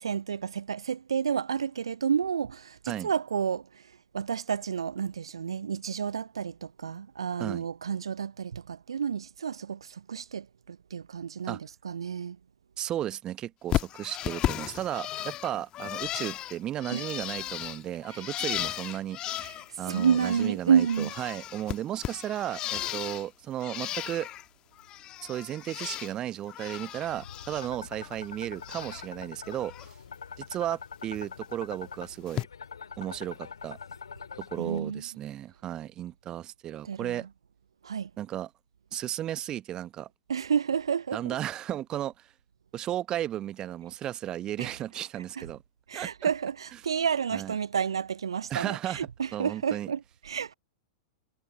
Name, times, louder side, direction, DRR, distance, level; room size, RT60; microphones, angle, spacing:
voice 1, 0.0-3.8 4.1-12.4 16.9-17.0 18.1-18.2 19.4-19.6 19.9-21.1 34.6-35.0 36.8-37.3 37.8-38.1 40.3-41.4 44.6-44.7 45.4-45.5 45.9-50.5, right 7 dB, 70° right, 0.6 m, -30 dB
voice 2, 12.8-19.2 19.8-24.3 25.2-29.7 30.4-32.5 33.0-33.8 34.4-37.3 38.2-38.5 38.9-40.1 41.1-42.3 42.7-45.6 45.9-46.1 47.3-47.5 48.5-49.9, right 12 dB, 30° right, 1.0 m, -34 dB
Bird, 13.7-20.5 20.7-23.3 23.6-24.4 24.8-26.1 26.4-27.7 28.0-29.1 29.4-29.9 31.1-31.3 32.3-32.4, left 13 dB, 30° left, 1.3 m, -35 dB
sound 1, 27.0-34.8, left 6 dB, 70° left, 2.4 m, -44 dB
figure-of-eight pair, 95°, 3 cm